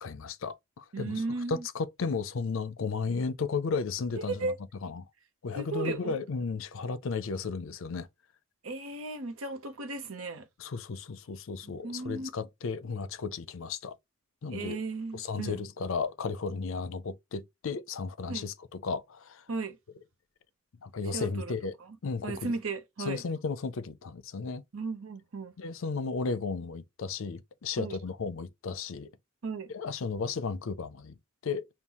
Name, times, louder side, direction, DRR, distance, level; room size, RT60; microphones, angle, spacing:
voice 1, 0.0-1.2 1.5-4.5 4.8-5.1 5.4-8.1 10.6-13.9 14.4-14.8 15.1-19.4 20.8-21.7 22.0-22.5 23.0-24.6 25.6-29.1 29.7-31.2 31.4-31.7, left 4 dB, 65° left, 0.5 m, -34 dB
voice 2, 0.9-1.7 4.1-4.6 5.5-6.1 8.6-10.5 11.6-12.3 14.5-15.6 18.3-18.5 19.5-19.8 21.1-21.5 22.2-23.2 24.7-25.5 27.8-28.0 29.4-29.7, right 3 dB, 80° right, 0.9 m, -35 dB
5.4 x 2.3 x 2.9 m
head